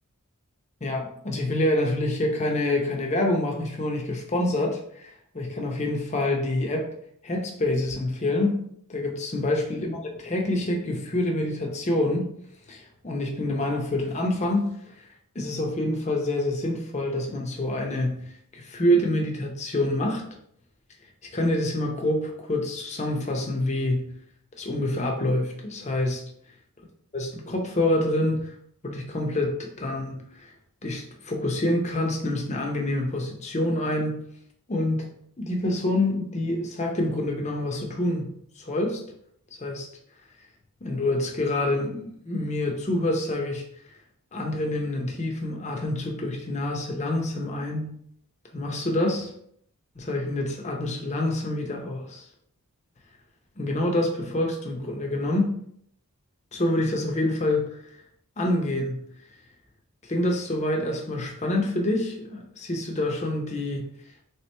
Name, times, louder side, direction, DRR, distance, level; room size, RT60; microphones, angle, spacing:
voice 1, 0.8-6.9 7.2-8.6 8.9-12.3 12.7-14.7 15.3-20.2 21.3-24.1 24.6-26.3 27.1-28.5 28.8-30.5 30.8-34.2 34.7-35.1 35.4-38.3 38.6-39.0 39.6-39.9 40.8-43.6 44.3-48.0 48.5-49.3 50.0-52.3 53.6-55.5 56.5-57.8 58.4-59.1 60.0-63.9, left 1 dB, 30° left, 1 dB, 0.6 m, -27 dB
3.5 x 2.9 x 3.3 m, 0.67 s
head